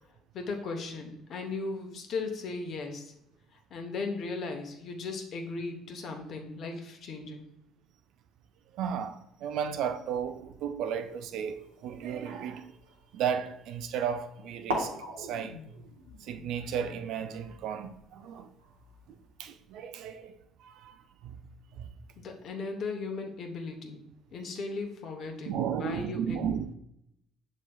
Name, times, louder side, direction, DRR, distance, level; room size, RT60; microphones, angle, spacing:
voice 1, 0.0-3.1 3.5-7.4 22.2-24.0 24.3-26.4, left 3 dB, 55° left, 0.9 m, -37 dB
voice 2, 8.7-12.7 13.1-15.6 16.2-18.5 19.4-21.4 21.7-21.9 25.5-26.7, right 8 dB, 65° right, 0.3 m, -34 dB
sound 1, 10.9-13.8 14.4-14.5 14.7-19.3, right 1 dB, 90° right, 0.7 m, -41 dB
6.9 x 3.1 x 2.3 m
hypercardioid pair, 55°, 0 cm